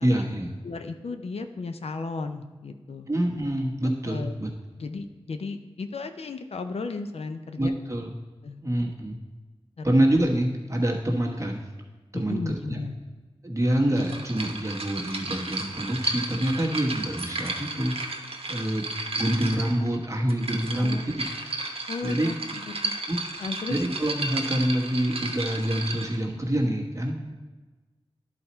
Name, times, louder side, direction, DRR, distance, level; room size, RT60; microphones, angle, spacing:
voice 1, 0.0-0.5 3.1-4.5 7.6-8.1 8.6-9.2 9.8-11.6 12.1-12.8 13.4-18.0 18.5-18.9 19.2-21.2 22.0-22.3 23.1-23.2 23.7-27.3, right 1 dB, 30° right, -1 dB, 1.3 m, -26 dB
voice 2, 0.6-3.1 4.1-4.3 4.8-7.7 8.4-8.6 9.8-10.1 12.1-12.9 20.8-21.1 21.9-22.9 23.4-23.8, left 3 dB, 85° left, 7 dB, 0.5 m, -35 dB
sound 1, 14.0-26.2, right 2 dB, 70° right, 0.9 m, -33 dB
11.0 x 4.2 x 4.4 m, 1.2 s
wide cardioid pair, 60°, 10 cm